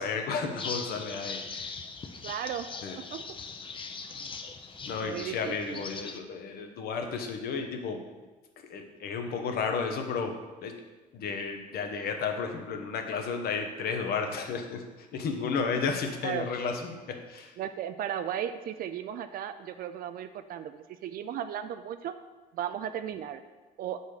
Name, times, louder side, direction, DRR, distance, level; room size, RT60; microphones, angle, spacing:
voice 1, 0.0-1.7 2.8-3.0 4.9-8.0 8.6-10.8 11.1-17.6, left 5 dB, 65° left, 5 dB, 0.9 m, -33 dB
sound 1, 0.6-6.2, left 4 dB, 30° left, 0.6 m, -40 dB
voice 2, 2.2-2.7 3.0-3.2 5.0-5.8 16.2-16.5 17.6-22.1 22.5-23.4 23.8-24.0, right 10 dB, 60° right, 9 dB, 0.4 m, -35 dB
6.9 x 4.1 x 4.8 m, 1.2 s
cardioid pair, 110°, 17 cm